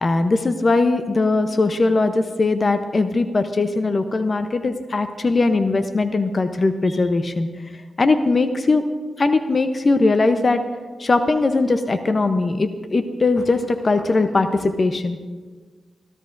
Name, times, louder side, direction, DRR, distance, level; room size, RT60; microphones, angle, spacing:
voice 1, 0.0-7.5 8.0-8.8 9.2-10.6 11.0-15.2, left 3 dB, 45° left, 9 dB, 0.7 m, -20 dB
24.5 x 12.5 x 2.6 m, 1.5 s
supercardioid pair, 45°, 0 cm